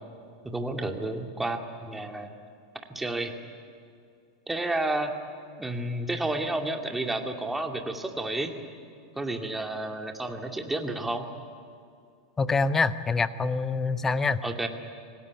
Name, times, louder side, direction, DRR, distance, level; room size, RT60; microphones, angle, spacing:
voice 1, 0.4-2.3 2.9-3.4 4.5-5.1 5.6-8.5 9.2-11.3 14.4-14.7, right 2 dB, 5° right, 4 dB, 2.3 m, -31 dB
voice 2, 12.4-14.4, left 4 dB, 15° left, 14 dB, 1.0 m, -25 dB
26.0 x 18.0 x 9.6 m, 2.4 s
figure-of-eight pair, 90°, 2 cm